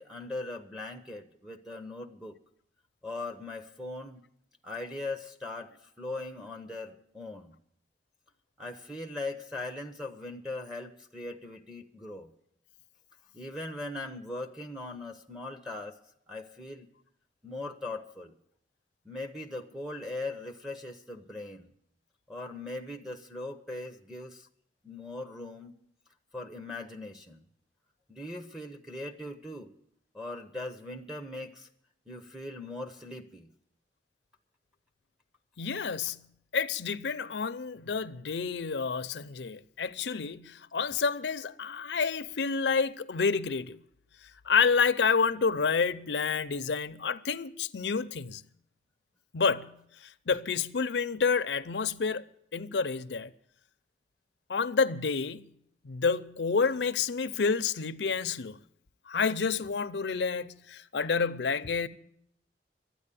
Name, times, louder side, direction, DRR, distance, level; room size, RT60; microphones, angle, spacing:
voice 1, 0.0-2.4 3.0-4.2 4.6-7.6 8.6-12.3 13.3-16.0 16.3-16.9 17.4-18.3 19.0-21.7 22.3-24.5 24.8-25.7 26.3-27.5 28.1-29.7 30.1-31.7 32.1-33.5, left 2 dB, 5° right, 0.7 m, -40 dB
voice 2, 35.6-36.3 36.5-43.8 44.4-48.4 49.3-52.2 52.5-53.3 54.5-55.5 55.8-58.6 59.1-61.9, left 5 dB, 75° left, 0.6 m, -29 dB
12.5 x 9.4 x 8.3 m
head